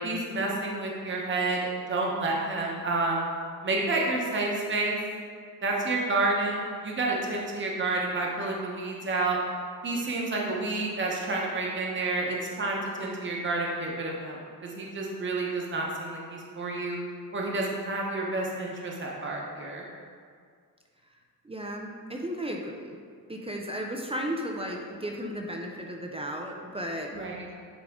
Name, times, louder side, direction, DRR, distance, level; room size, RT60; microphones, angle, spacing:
voice 1, 0.0-1.6 1.9-3.2 3.6-5.0 5.6-9.4 9.8-17.0 17.3-19.8 27.1-27.5, right 2 dB, 30° right, -2 dB, 0.9 m, -29 dB
voice 2, 21.4-23.0 23.3-27.1, equal, 15° right, 1 dB, 0.4 m, -34 dB
9.9 x 3.6 x 3.6 m, 2.1 s
wide cardioid pair, 170°, 36 cm